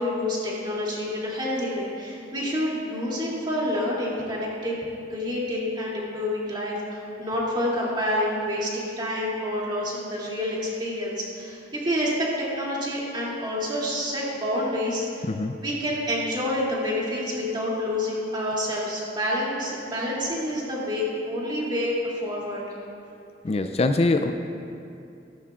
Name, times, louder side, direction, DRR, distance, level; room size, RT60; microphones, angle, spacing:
voice 1, 0.0-4.8 5.1-15.2 15.6-22.6, left 1 dB, 25° right, -6 dB, 2.7 m, -28 dB
voice 2, 23.4-24.3, left 2 dB, 35° left, 7 dB, 0.4 m, -23 dB
15.5 x 14.0 x 2.5 m, 2.6 s
head